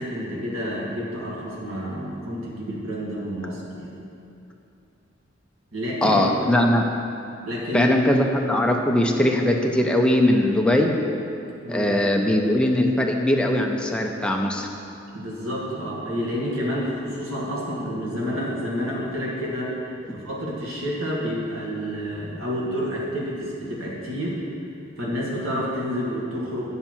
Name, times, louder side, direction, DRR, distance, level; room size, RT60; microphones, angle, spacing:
voice 1, 0.0-3.9 5.7-6.2 7.5-7.9 11.6-12.4 15.1-24.4 25.0-26.7, equal, 90° right, -5 dB, 2.1 m, -29 dB
voice 2, 6.0-6.9 7.7-10.9 11.7-14.7, left 1 dB, 5° left, 1 dB, 0.6 m, -20 dB
9.3 x 7.3 x 4.5 m, 2.7 s
head